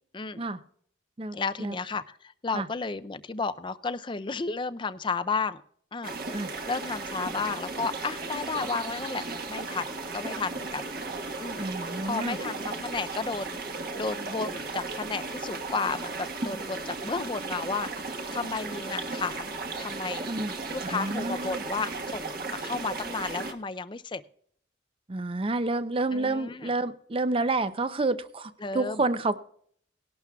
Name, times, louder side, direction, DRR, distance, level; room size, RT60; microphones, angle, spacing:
voice 1, 0.1-0.5 1.3-5.6 5.9-10.9 11.4-13.6 13.9-20.3 20.7-24.2 26.1-26.7 28.6-29.0, left 4 dB, 25° left, 13 dB, 0.4 m, -33 dB
voice 2, 1.2-1.8 2.5-2.7 6.3-6.5 11.6-12.4 20.2-20.6 20.9-21.6 25.1-29.4, right 2 dB, 30° right, 13 dB, 0.5 m, -29 dB
sound 1, 6.0-23.5, right 3 dB, 50° right, 1.4 m, -35 dB
19.0 x 11.5 x 2.3 m, 0.63 s
head